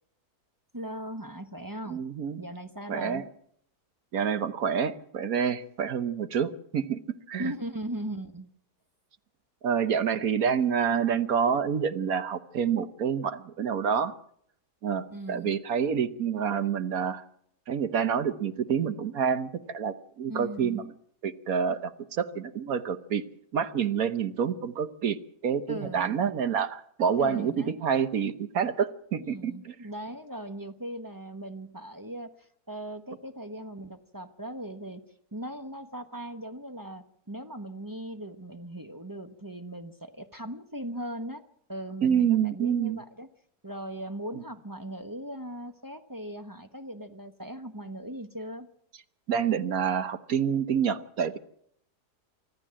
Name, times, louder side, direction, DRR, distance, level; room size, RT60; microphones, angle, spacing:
voice 1, 0.7-2.0 2.4-3.2 7.4-8.5 15.1-15.5 20.3-20.8 25.7-26.2 27.2-27.8 29.3-35.0 35.3-41.4 41.7-43.3 43.6-48.7, right 1 dB, 15° right, 7 dB, 0.8 m, -39 dB
voice 2, 1.9-2.4 2.9-3.2 4.1-7.0 7.3-7.5 9.6-14.2 14.8-17.2 17.7-20.8 21.2-23.2 23.5-25.2 25.4-29.7 42.0-43.0 49.3-51.4, right 7 dB, 60° right, 12 dB, 1.4 m, -28 dB
25.0 x 14.0 x 7.5 m, 0.69 s
omnidirectional pair, 1.8 m